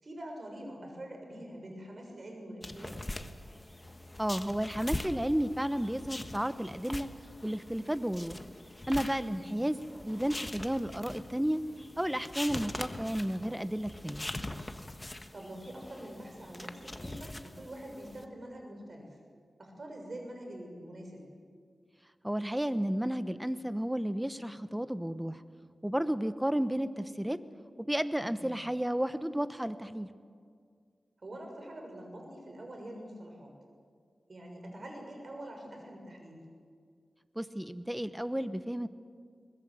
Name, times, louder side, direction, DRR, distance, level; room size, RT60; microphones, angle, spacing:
voice 1, 0.0-3.0 9.3-9.6 15.3-19.2 19.6-21.2 28.3-28.6 31.2-33.5 34.3-36.4, right 1 dB, 55° right, 2 dB, 6.4 m, -45 dB
sound 1, 2.6-18.2, left 1 dB, 20° left, 1.4 m, -43 dB
voice 2, 4.2-7.1 7.4-8.4 8.9-11.6 12.0-14.3 22.2-25.4 25.8-27.4 27.9-30.1 37.3-38.9, equal, 5° right, 12 dB, 1.1 m, -32 dB
22.5 x 20.0 x 7.8 m, 2.1 s
cardioid pair, 65°, 0 cm